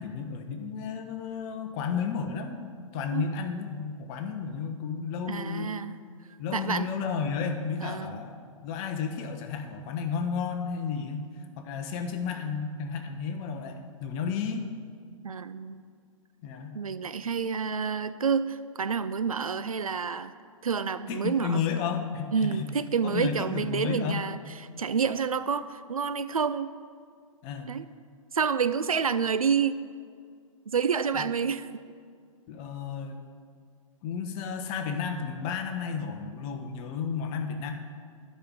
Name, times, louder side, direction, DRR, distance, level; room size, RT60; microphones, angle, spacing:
voice 1, 0.0-5.8 6.4-8.4 8.6-11.3 11.6-14.7 16.4-16.8 21.1-22.7 23.0-24.2 27.4-27.7 31.1-31.2 32.5-33.2 34.0-37.7, left 6 dB, 30° left, 5 dB, 1.0 m, -32 dB
voice 2, 5.3-6.0 6.5-6.9 7.8-8.2 15.2-15.8 16.7-20.3 20.6-21.6 22.3-24.4 24.8-26.7 27.7-27.9 28.3-29.8 30.7-31.7, right 6 dB, 80° right, 13 dB, 0.4 m, -28 dB
10.0 x 5.6 x 7.4 m, 2.1 s
figure-of-eight pair, 115°, 18 cm